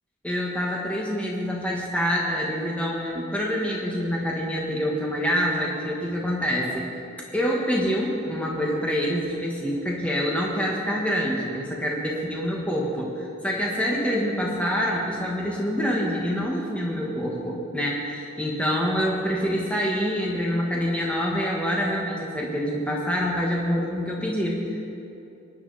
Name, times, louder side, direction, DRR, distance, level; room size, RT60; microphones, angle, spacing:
voice 1, 0.2-6.9 7.2-25.0, equal, 5° left, -3 dB, 1.5 m, -26 dB
23.0 x 10.5 x 4.1 m, 2.8 s
head